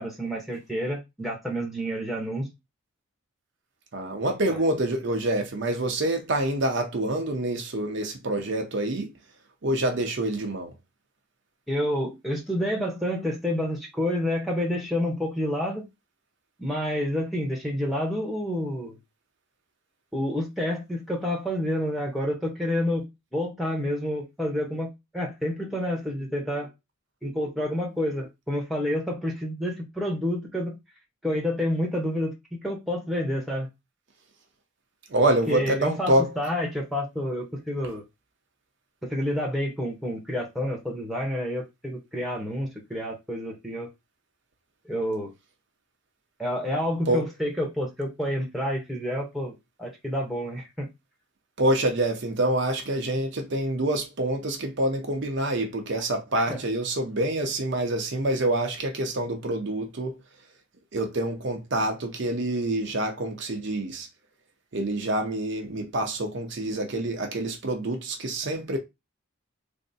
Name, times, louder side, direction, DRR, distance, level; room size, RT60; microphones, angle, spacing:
voice 1, 0.0-2.5 11.7-15.9 16.6-19.0 20.1-26.7 27.2-30.8 31.2-33.7 35.5-38.0 39.1-43.9 44.8-45.3 46.4-50.9 56.3-56.6, equal, ahead, 0.8 m, -29 dB
voice 2, 3.9-9.1 9.6-10.7 35.1-36.3 47.1-47.2 51.6-60.1 60.9-64.1 64.7-68.8, right 1 dB, 55° right, 0.7 m, -26 dB
3.5 x 2.0 x 4.0 m
head